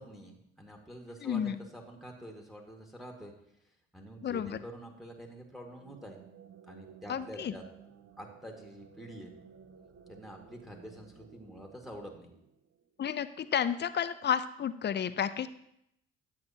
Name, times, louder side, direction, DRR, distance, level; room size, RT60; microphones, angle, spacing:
voice 1, 0.0-3.3 3.9-6.2 6.7-7.6 8.2-9.3 10.1-12.3, equal, ahead, 2 dB, 1.9 m, -47 dB
voice 2, 1.2-1.6 4.2-4.6 7.1-7.5 13.0-15.5, left 8 dB, 35° left, 13 dB, 0.6 m, -31 dB
sound 1, 5.6-13.0, right 7 dB, 50° right, 0.9 m, -56 dB
9.9 x 7.7 x 2.9 m, 0.76 s
hypercardioid pair, 50°, 30 cm